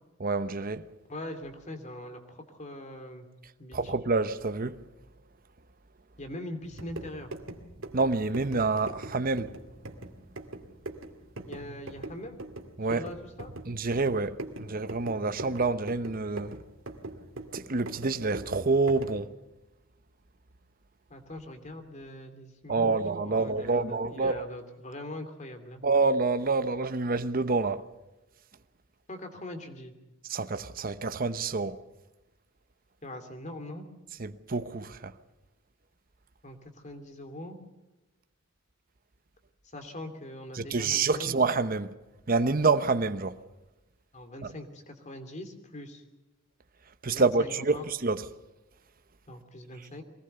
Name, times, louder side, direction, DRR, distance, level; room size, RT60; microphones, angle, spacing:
voice 1, 0.2-0.9 3.7-4.8 7.9-9.5 12.8-13.0 13.7-16.6 17.5-19.3 22.7-24.4 25.8-27.8 30.3-31.8 34.2-35.1 40.6-41.9 42.3-43.3 47.0-48.2, right 3 dB, 45° right, 0.9 m, -27 dB
voice 2, 1.1-3.3 3.6-3.9 6.2-7.3 11.5-12.4 12.9-13.5 21.1-25.8 29.1-29.9 33.0-33.9 36.4-37.6 39.7-41.3 44.1-46.0 47.1-47.8 49.3-50.0, left 1 dB, 35° left, 2.8 m, -42 dB
sound 1, 6.6-19.3, right 2 dB, 70° right, 2.3 m, -43 dB
23.5 x 19.0 x 6.8 m
head